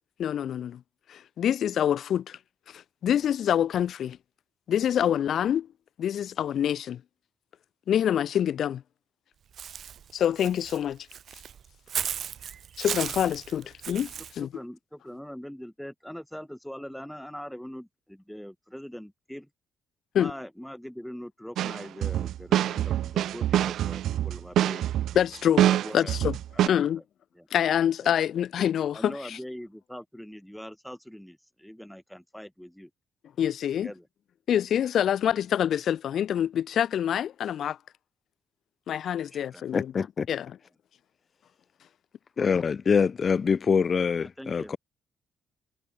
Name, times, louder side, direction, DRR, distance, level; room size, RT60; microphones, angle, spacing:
voice 1, 0.2-0.8 1.1-2.4 2.7-4.2 4.7-5.7 6.0-7.0 7.9-8.8 10.1-11.0 12.8-14.5 20.1-20.3 25.1-25.7 25.9-26.4 26.7-27.0 27.5-29.4 33.4-33.9 34.5-37.8 38.9-39.9 40.3-40.6, left 9 dB, 65° left, 1.2 m, -26 dB
Walk footsteps / Bird, 9.6-14.3, right 8 dB, 60° right, 2.9 m, -35 dB
voice 2, 14.4-19.5 20.2-24.9 25.7-26.1 26.5-27.0 27.3-27.5 28.0-28.1 28.9-32.9 33.8-34.1 39.2-39.6 44.2-44.8, equal, ahead, 2.0 m, -42 dB
sound 1, 21.6-26.7, right 12 dB, 75° right, 0.5 m, -25 dB
voice 3, 39.7-40.3 42.4-44.8, left 6 dB, 40° left, 0.4 m, -24 dB
cardioid pair, 90°, 0 cm